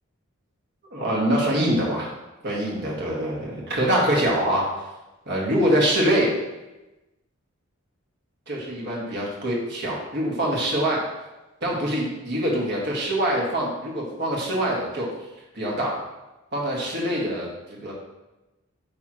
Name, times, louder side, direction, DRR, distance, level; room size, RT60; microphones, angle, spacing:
voice 1, 0.9-2.1 2.4-4.7 5.3-6.3 8.5-11.0 11.6-15.1 15.5-16.0 16.5-17.9, right 1 dB, 55° right, -4 dB, 1.7 m, -24 dB
9.1 x 3.6 x 3.0 m, 1.0 s
head